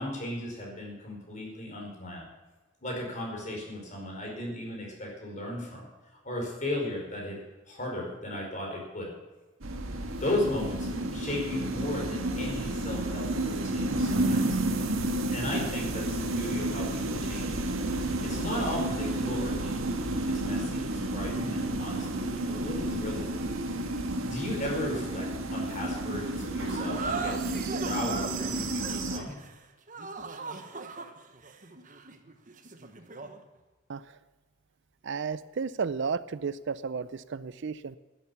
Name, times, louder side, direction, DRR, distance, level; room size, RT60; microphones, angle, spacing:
voice 1, 0.0-2.2 2.8-5.9 6.2-7.4 7.7-9.1 10.2-14.6 15.3-17.6 18.2-19.8 20.3-23.3 24.1-27.3 27.8-29.3, left 1 dB, 35° left, -1 dB, 4.9 m, -35 dB
sound 1, 9.6-29.2, right 1 dB, 80° right, 1.6 m, -31 dB
sound 2, 26.7-33.4, right 4 dB, 40° right, 1.1 m, -38 dB
voice 2, 35.0-38.0, right 5 dB, 55° right, 16 dB, 0.4 m, -33 dB
11.5 x 11.0 x 7.1 m, 1.2 s
head